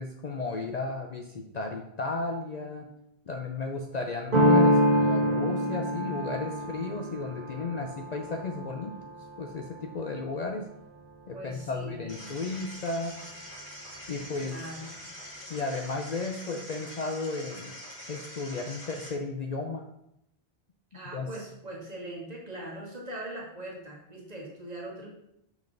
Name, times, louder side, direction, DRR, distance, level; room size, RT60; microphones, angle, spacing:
voice 1, 0.0-2.9 3.3-8.9 9.4-10.7 11.3-13.2 14.1-14.7 15.5-17.7 18.1-19.8 21.1-21.3, left 3 dB, 50° left, 3 dB, 0.6 m, -34 dB
sound 1, 4.3-9.9, equal, 55° right, 1.3 m, -26 dB
voice 2, 11.3-12.4 14.4-14.9 20.9-25.1, right 1 dB, 40° right, -3 dB, 1.7 m, -41 dB
sound 2, 12.1-19.1, equal, 30° left, 2.3 m, -44 dB
5.6 x 5.3 x 3.8 m, 0.79 s
omnidirectional pair, 1.0 m